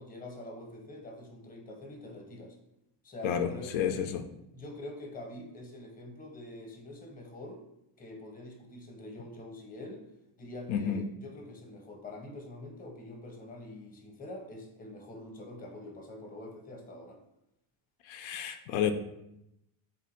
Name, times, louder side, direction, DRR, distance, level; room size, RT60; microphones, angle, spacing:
voice 1, 0.0-2.6 3.0-3.7 4.5-7.6 8.0-10.0 10.4-17.2, left 1 dB, 20° left, 2 dB, 0.7 m, -45 dB
voice 2, 3.2-4.3 10.7-11.1 18.0-18.9, left 8 dB, 85° left, 7 dB, 0.5 m, -31 dB
3.5 x 2.5 x 4.3 m, 0.84 s
cardioid pair, 120°, 45 cm